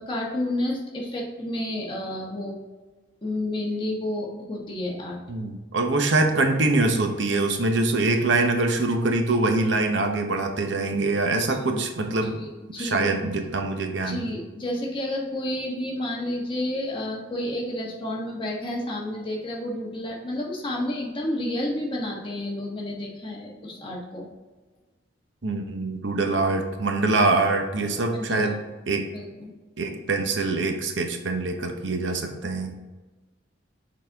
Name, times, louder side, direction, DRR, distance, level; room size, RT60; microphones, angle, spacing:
voice 1, 0.0-2.6 3.2-5.2 11.5-11.8 12.2-13.1 14.1-24.3 28.1-28.5 29.1-29.5, left 1 dB, 25° left, -2 dB, 1.2 m, -30 dB
voice 2, 5.3-12.4 12.8-14.2 25.4-28.6 28.9-29.1 29.8-32.7, right 2 dB, 75° right, 4 dB, 0.8 m, -24 dB
6.6 x 4.1 x 3.5 m, 1.2 s
head